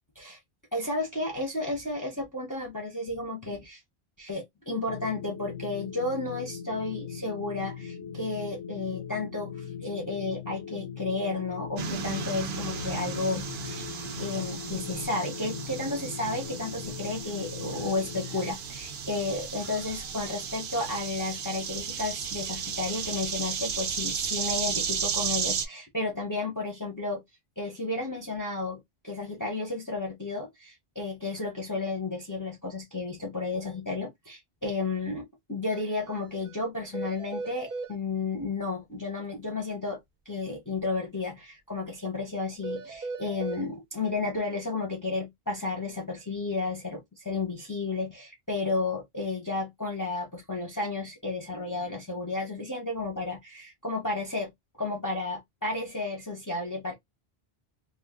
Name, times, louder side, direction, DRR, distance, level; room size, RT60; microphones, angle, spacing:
voice 1, 0.7-3.8 4.2-13.9 14.1-27.2 27.6-40.0 40.3-54.5 54.8-56.9, left 3 dB, 20° left, 0.7 m, -32 dB
sound 1, 4.9-18.5, left 7 dB, 75° left, 0.8 m, -40 dB
sound 2, 11.8-25.7, right 6 dB, 85° right, 0.9 m, -34 dB
sound 3, 35.7-35.8 36.1-36.2 36.5-36.6 36.9-37.9 42.6-43.6, right 3 dB, 55° right, 0.8 m, -37 dB
2.3 x 2.3 x 3.4 m
omnidirectional pair, 1.0 m